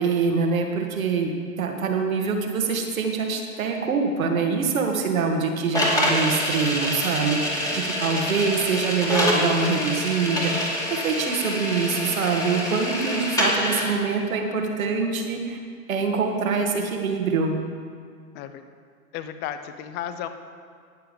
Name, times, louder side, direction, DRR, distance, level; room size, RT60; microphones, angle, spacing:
voice 1, 0.0-15.6 15.9-17.5, right 5 dB, 65° right, 2 dB, 1.9 m, -25 dB
sound 1, 5.7-13.9, left 1 dB, 10° left, 2.3 m, -26 dB
voice 2, 7.6-8.1 18.3-18.6 19.1-20.3, left 10 dB, 25° left, 10 dB, 0.6 m, -34 dB
18.0 x 6.8 x 5.3 m, 2.1 s
figure-of-eight pair, 110°, 44 cm